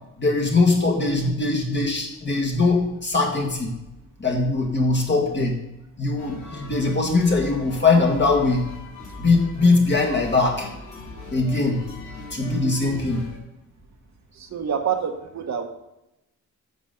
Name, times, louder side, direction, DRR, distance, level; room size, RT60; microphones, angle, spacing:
voice 1, 0.2-3.7 4.2-5.6 6.0-8.6 9.2-10.7 11.3-11.8 12.3-13.2, left 3 dB, 35° left, 1 dB, 1.9 m, -21 dB
sound 1, 6.2-13.4, left 2 dB, 65° left, 3.2 m, -39 dB
voice 2, 14.3-15.7, right 7 dB, 55° right, 4 dB, 1.2 m, -27 dB
10.0 x 7.2 x 3.9 m, 0.91 s
wide cardioid pair, 140°, 33 cm